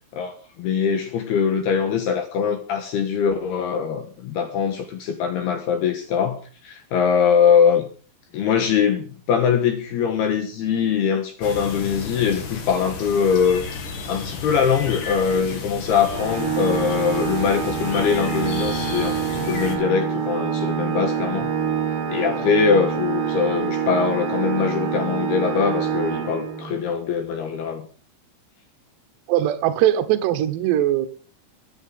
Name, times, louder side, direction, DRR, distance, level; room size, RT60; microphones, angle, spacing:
voice 1, 0.1-7.9 8.3-13.6 14.1-21.5 22.1-27.9, left 7 dB, 70° left, 2.6 m, -22 dB
sound 1, 11.4-19.8, left 4 dB, 50° left, 2.9 m, -33 dB
Organ, 16.1-26.9, right 7 dB, 55° right, 2.7 m, -26 dB
voice 2, 29.3-31.1, right 12 dB, 70° right, 2.9 m, -20 dB
22.5 x 10.0 x 3.7 m
omnidirectional pair, 5.8 m